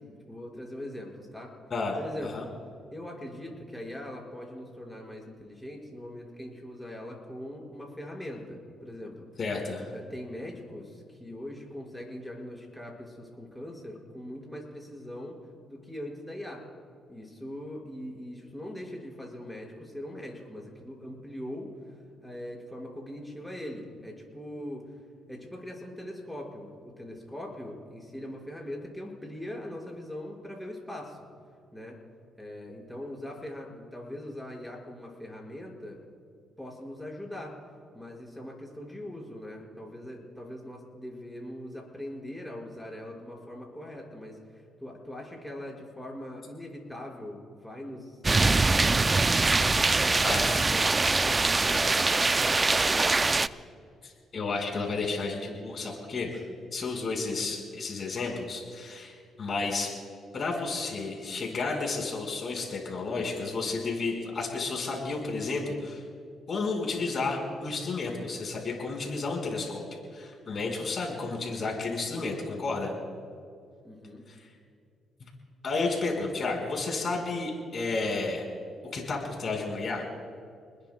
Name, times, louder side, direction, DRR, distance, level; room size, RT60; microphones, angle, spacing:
voice 1, 0.0-1.5 2.0-2.5 2.9-9.3 9.9-15.4 15.7-16.7 17.1-24.9 25.3-31.2 31.7-32.0 32.4-36.0 36.6-37.6 37.9-52.2 52.4-53.7 73.8-74.2, left 1 dB, 5° left, -2 dB, 5.4 m, -41 dB
voice 2, 9.4-9.9 50.2-50.7 54.0-56.4 56.7-59.9 60.3-66.0 66.5-69.8 70.1-72.9 74.3-74.4 75.6-78.4 78.9-80.0, left 3 dB, 45° left, 0 dB, 4.9 m, -32 dB
sound 1, 48.2-53.5, right 3 dB, 25° right, 0.4 m, -23 dB
29.0 x 20.5 x 2.3 m, 2.4 s
cardioid pair, 90°, 0 cm